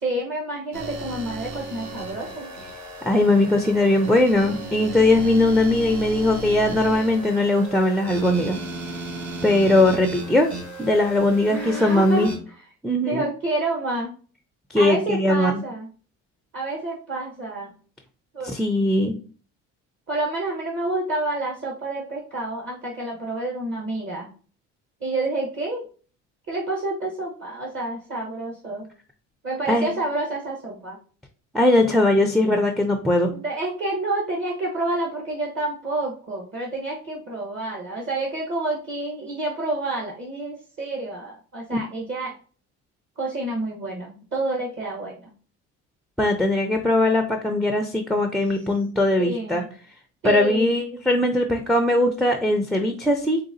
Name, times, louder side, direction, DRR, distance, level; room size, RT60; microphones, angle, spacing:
voice 1, 0.0-2.5 11.5-12.3 13.0-14.1 14.7-15.9 16.5-17.7 18.3-18.6 20.1-24.3 25.0-25.8 26.5-28.9 29.4-31.0 33.3-42.4 43.2-45.3 49.2-49.7 50.2-50.7, right 2 dB, 40° right, -2 dB, 1.0 m, -29 dB
sound 1, 0.7-12.4, right 1 dB, 60° right, 1.4 m, -35 dB
voice 2, 3.0-8.6 9.4-10.5 10.8-12.3 12.8-13.2 14.7-15.6 18.4-19.1 29.7-29.9 31.5-33.3 41.7-41.8 46.2-49.6 50.2-53.4, left 1 dB, ahead, 5 dB, 0.3 m, -20 dB
3.9 x 3.5 x 2.5 m, 0.40 s
cardioid pair, 100°, 31 cm